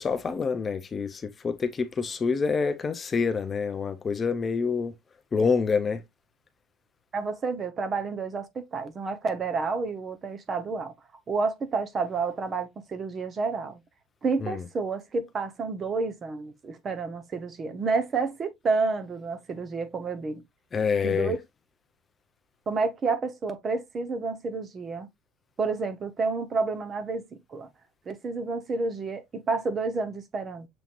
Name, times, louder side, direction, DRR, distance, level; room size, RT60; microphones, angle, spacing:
voice 1, 0.0-4.9 5.3-6.0 14.4-14.6 20.7-21.3, left 5 dB, 20° left, 0.5 m, -27 dB
voice 2, 7.1-10.9 11.3-13.8 14.2-20.4 21.0-21.4 22.7-25.1 25.6-27.2 27.5-27.7 28.1-30.7, right 4 dB, 25° right, 0.8 m, -30 dB
7.0 x 3.1 x 2.5 m
cardioid pair, 150°, 0 cm